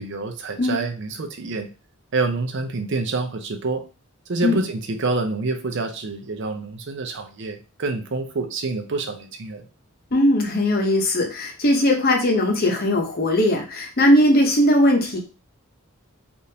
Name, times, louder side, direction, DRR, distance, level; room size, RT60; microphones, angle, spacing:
voice 1, 0.0-1.7 2.1-3.8 4.3-9.6, right 3 dB, 55° right, 6 dB, 0.5 m, -27 dB
voice 2, 10.1-15.2, left 1 dB, 45° left, 2 dB, 0.8 m, -19 dB
3.5 x 2.5 x 2.7 m, 0.33 s
head